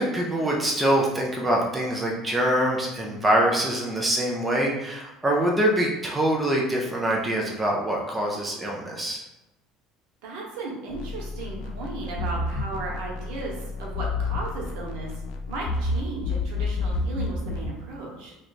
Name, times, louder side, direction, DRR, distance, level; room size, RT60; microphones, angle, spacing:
voice 1, 0.0-9.2, right 1 dB, 5° right, -3 dB, 0.4 m, -24 dB
voice 2, 10.2-15.1 15.5-18.3, right 2 dB, 70° right, -2 dB, 1.0 m, -35 dB
sound 1, 10.9-17.7, left 3 dB, 55° left, 0.4 m, -30 dB
3.1 x 2.2 x 4.0 m, 0.98 s
cardioid pair, 170°, 0 cm